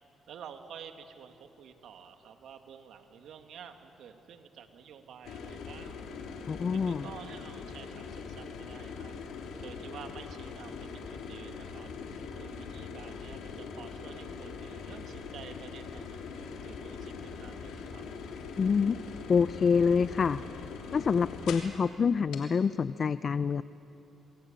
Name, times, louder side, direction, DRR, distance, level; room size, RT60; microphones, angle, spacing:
voice 1, 0.3-6.1 6.7-9.1 9.6-11.9 12.4-17.1 17.4-18.0, right 7 dB, 75° right, 6 dB, 2.2 m, -50 dB
sound 1, 5.2-21.8 22.3-22.4, left 5 dB, 85° left, 3.1 m, -42 dB
voice 2, 6.5-7.1 18.6-19.0 19.3-20.4 20.9-23.6, left 6 dB, 45° left, 15 dB, 0.5 m, -26 dB
27.5 x 21.5 x 8.9 m, 2.9 s
cardioid pair, 90°, 0 cm